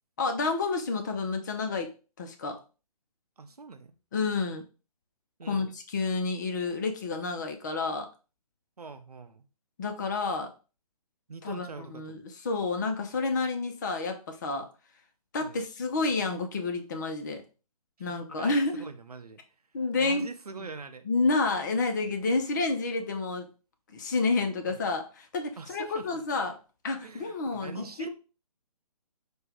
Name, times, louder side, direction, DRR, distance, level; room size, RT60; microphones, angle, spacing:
voice 1, 0.2-2.6 4.1-4.6 5.5-8.1 9.8-10.5 11.4-11.7 11.9-14.7 15.3-17.4 18.0-18.9 19.7-20.3 21.1-23.5 23.9-26.6 26.8-28.1, left 3 dB, 30° left, 0.5 m, -29 dB
voice 2, 3.4-3.9 5.4-5.7 8.8-9.5 11.3-12.2 15.4-15.6 18.0-19.4 20.0-21.1 24.7-24.8 25.6-26.4 27.0-28.1, right 4 dB, 75° right, 0.6 m, -44 dB
4.3 x 2.2 x 3.5 m
figure-of-eight pair, 135°, 20 cm